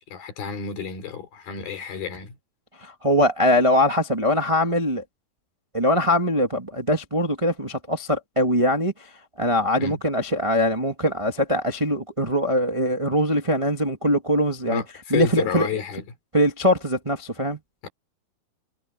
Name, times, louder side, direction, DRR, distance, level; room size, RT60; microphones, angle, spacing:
voice 1, 0.1-2.4 9.8-10.0 14.7-16.0 17.8-17.9, left 7 dB, 80° left, 5.4 m, -30 dB
voice 2, 2.8-5.0 5.7-8.9 9.4-14.8 15.1-15.8 16.3-17.6, equal, 30° right, 0.6 m, -22 dB
omnidirectional pair, 4.3 m